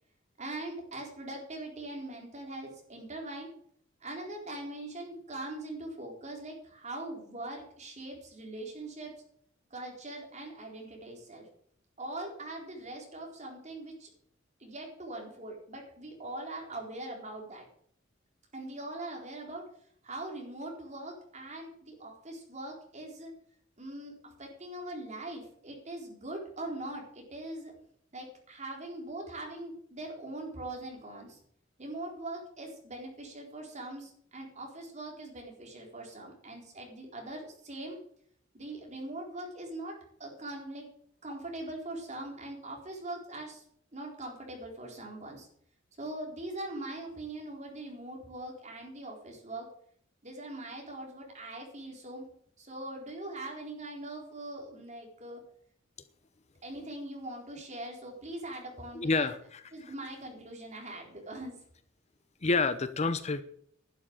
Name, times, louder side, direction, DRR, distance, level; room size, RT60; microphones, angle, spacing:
voice 1, 0.4-3.5 4.0-9.1 9.7-11.5 12.0-14.1 14.6-17.7 18.5-19.6 20.0-23.3 23.8-27.7 28.1-31.4 31.8-38.0 38.5-40.9 41.2-43.6 43.9-45.5 46.0-49.7 50.2-52.3 52.6-55.4 56.6-59.3 59.7-61.5, right 1 dB, 40° right, 0 dB, 4.1 m, -41 dB
voice 2, 58.9-59.9 62.4-63.4, left 3 dB, 35° left, 12 dB, 0.7 m, -29 dB
11.5 x 7.4 x 8.7 m, 0.64 s
head